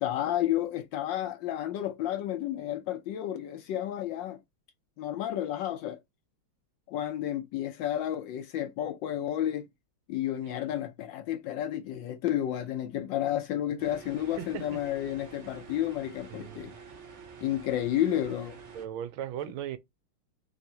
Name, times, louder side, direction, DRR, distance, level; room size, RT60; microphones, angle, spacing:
voice 1, 0.0-4.4 5.0-6.0 6.9-9.7 10.1-16.7 17.4-18.6, left 12 dB, 75° left, 1.2 m, -31 dB
sound 1, 13.8-18.9, right 6 dB, 65° right, 0.7 m, -48 dB
voice 2, 14.4-14.8 16.3-16.8 18.7-19.8, right 10 dB, 80° right, 1.4 m, -38 dB
3.6 x 3.1 x 2.7 m
omnidirectional pair, 2.3 m